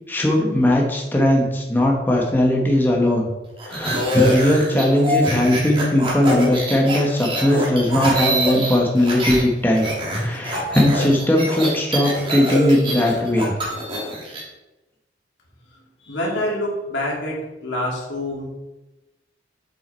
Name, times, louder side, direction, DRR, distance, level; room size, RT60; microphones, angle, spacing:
voice 1, 0.1-3.3 3.7-9.9 10.1-13.5, left 1 dB, 10° left, -1 dB, 1.0 m, -19 dB
sound 1, 3.6-9.4 9.7-14.4, right 1 dB, 30° right, 2.0 m, -25 dB
voice 2, 16.0-18.5, left 1 dB, 90° left, -3 dB, 2.5 m, -26 dB
7.6 x 5.6 x 4.3 m, 1.0 s
head